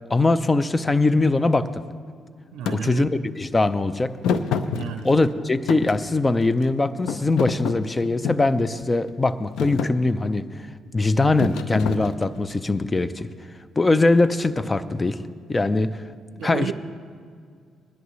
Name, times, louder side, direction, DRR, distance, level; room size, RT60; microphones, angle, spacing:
voice 1, 0.1-1.7 2.7-4.1 5.0-10.4 10.9-13.3 13.8-15.2 15.5-16.0 16.4-16.7, left 2 dB, 20° left, 13 dB, 0.5 m, -21 dB
voice 2, 2.5-3.1 4.7-5.1 16.3-16.7, right 8 dB, 90° right, 8 dB, 0.5 m, -31 dB
Thump thud, 2.7-2.8 4.2-5.3 5.7-6.7 7.1-8.5 9.1-9.3 9.6-10.0 11.4-12.5, left 6 dB, 80° left, 0.6 m, -27 dB
20.5 x 10.5 x 3.1 m, 2.1 s
cardioid pair, 90°, 0 cm